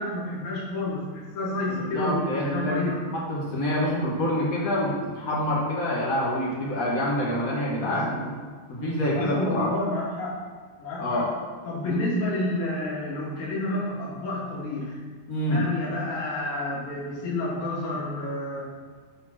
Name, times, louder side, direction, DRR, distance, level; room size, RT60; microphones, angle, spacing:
voice 1, 0.0-3.0 7.8-8.1 9.2-10.5 10.8-11.3 11.6-15.0 15.5-18.7, left 1 dB, 70° left, -6 dB, 4.0 m, -30 dB
voice 2, 1.7-8.3 8.7-9.7 11.0-11.3 11.9-12.0 15.3-15.6, left 1 dB, 45° left, -5 dB, 1.1 m, -27 dB
9.3 x 4.4 x 6.1 m, 1.5 s
omnidirectional pair, 4.2 m